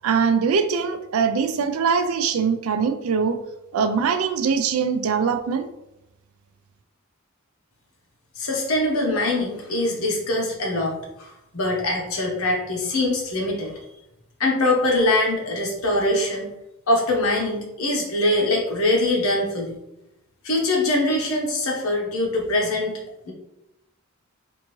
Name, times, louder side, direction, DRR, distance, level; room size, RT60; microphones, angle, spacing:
voice 1, 0.0-3.4 3.7-5.7, right 6 dB, 80° right, 9 dB, 0.4 m, -22 dB
voice 2, 8.4-13.8 14.4-16.5 16.9-19.8 20.4-23.0 23.3-23.4, left 1 dB, 85° left, 0 dB, 0.9 m, -23 dB
3.5 x 2.5 x 3.0 m, 0.90 s
head